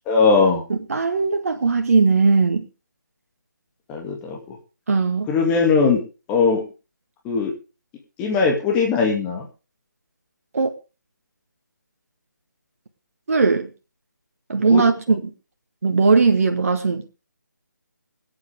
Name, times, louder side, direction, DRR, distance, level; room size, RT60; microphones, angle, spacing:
voice 1, 0.1-0.6 3.9-4.6 5.3-6.0 6.3-6.6 7.2-7.5 8.2-9.5 14.7-14.8, left 4 dB, 10° left, 2.4 m, -19 dB
voice 2, 0.7-2.7 4.9-5.3 10.5-10.7 13.3-13.7 14.5-15.3 15.8-17.1, right 4 dB, 45° right, 1.8 m, -19 dB
24.0 x 8.9 x 3.5 m
figure-of-eight pair, 150°, 10 cm